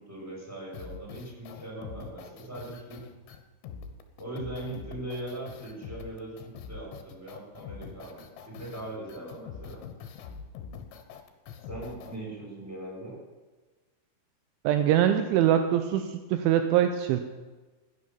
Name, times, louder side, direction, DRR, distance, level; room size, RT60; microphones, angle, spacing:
voice 1, 0.0-3.0 4.2-9.9 11.6-13.2, right 1 dB, 5° right, -4 dB, 5.7 m, -40 dB
sound 1, 0.7-12.2, left 6 dB, 75° left, 3.3 m, -44 dB
voice 2, 14.6-17.2, right 10 dB, 80° right, 8 dB, 3.1 m, -23 dB
15.5 x 10.5 x 7.2 m, 1.2 s
omnidirectional pair, 5.6 m